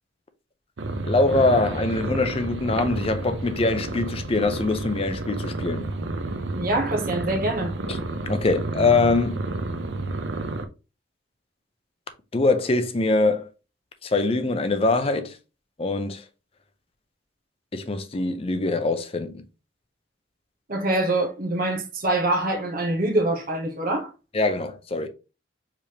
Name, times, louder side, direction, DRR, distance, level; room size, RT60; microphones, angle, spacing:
sound 1, 0.8-10.6, right 2 dB, 80° right, 0.6 m, -30 dB
voice 1, 1.0-5.9 7.9-8.0 8.3-9.4 12.3-13.5 14.0-15.4 15.8-16.2 17.7-19.4 24.3-25.1, left 3 dB, 30° left, 0.6 m, -23 dB
voice 2, 6.5-7.7 20.7-24.1, right 2 dB, 50° right, 1.0 m, -24 dB
4.9 x 3.4 x 2.9 m
head